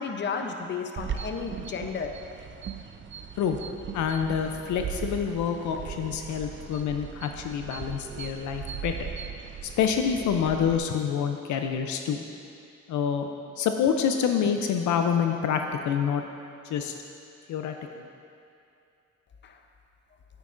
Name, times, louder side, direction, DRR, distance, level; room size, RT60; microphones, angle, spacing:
voice 1, 0.0-2.1 19.4-19.6, left 5 dB, 35° left, 5 dB, 0.7 m, -33 dB
sound 1, 1.0-10.8, right 7 dB, 40° right, 0.5 m, -38 dB
voice 2, 3.9-9.1 9.8-12.2 12.9-13.3 13.6-16.2 16.6-16.9 17.5-18.0, left 7 dB, 75° left, 5 dB, 0.5 m, -27 dB
9.3 x 8.2 x 2.5 m, 2.5 s
cardioid pair, 90°, 30 cm